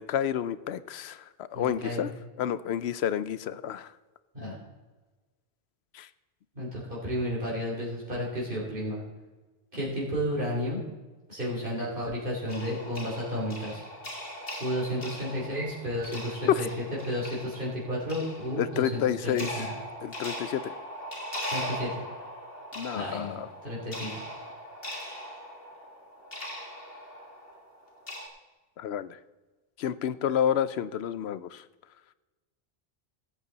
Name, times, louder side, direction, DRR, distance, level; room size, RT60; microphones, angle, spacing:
voice 1, 0.0-2.1 2.4-3.9 5.9-6.1 16.5-16.6 18.6-19.5 20.0-20.7 22.8-23.5 28.8-29.2 29.8-31.6, left 9 dB, 90° left, 16 dB, 0.9 m, -29 dB
voice 2, 1.5-2.1 4.3-4.6 6.6-9.0 9.7-10.8 11.3-13.8 14.6-16.7 17.0-19.7 21.5-22.0 22.9-24.2, equal, 55° right, -5 dB, 3.6 m, -32 dB
sound 1, 12.5-28.3, equal, 65° left, 2.6 m, -40 dB
17.0 x 8.4 x 4.0 m, 1.2 s
omnidirectional pair, 1.0 m